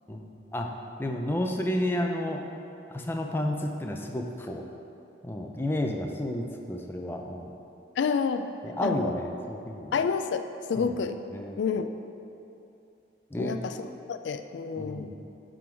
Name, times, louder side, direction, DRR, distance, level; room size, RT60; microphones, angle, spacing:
voice 1, 0.1-0.7 1.0-2.4 2.9-4.7 5.2-7.5 8.6-10.0 10.7-10.9 11.3-11.6 13.3-13.6 14.8-15.1, left 1 dB, 10° left, 2 dB, 0.5 m, -31 dB
voice 2, 8.0-8.5 8.8-9.1 9.9-11.2 11.6-11.9 13.4-15.1, left 5 dB, 80° left, 9 dB, 0.3 m, -29 dB
11.0 x 3.9 x 4.5 m, 2.7 s
head